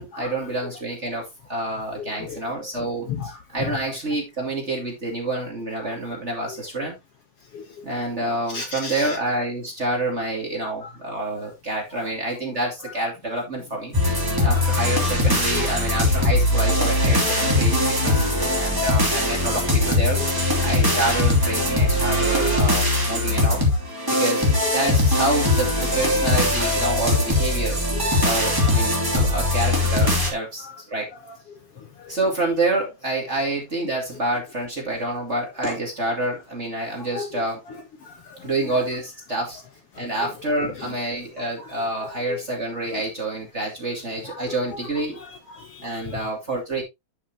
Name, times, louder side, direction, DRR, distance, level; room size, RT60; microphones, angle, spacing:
voice 1, 0.0-7.0 7.8-13.9 14.4-23.6 24.1-27.8 28.2-31.1 32.1-37.6 38.4-39.6 39.9-45.2 45.8-46.8, right 2 dB, 25° right, 2.5 m, -28 dB
voice 2, 1.9-3.8 5.8-6.0 6.5-6.6 7.5-7.7 8.5-9.2 10.8-10.9 14.4-14.7 15.5-15.7 19.2-19.6 19.8-21.0 22.4-22.6 23.1-23.3 24.1-24.2 26.6-26.7 27.9-28.1 29.0-29.1 30.2-30.4 30.6-30.7 31.8-32.2 37.0-37.4 37.7-37.8 38.1-38.4 40.0-40.3 40.6-40.9 41.6-41.8 42.1-42.4 42.9-43.0 44.3-44.4 44.7-44.8 45.2-46.2, left 5 dB, 55° left, 2.0 m, -36 dB
sound 1, 13.9-30.3, left 1 dB, 5° right, 2.4 m, -21 dB
10.5 x 6.7 x 2.9 m
omnidirectional pair, 3.5 m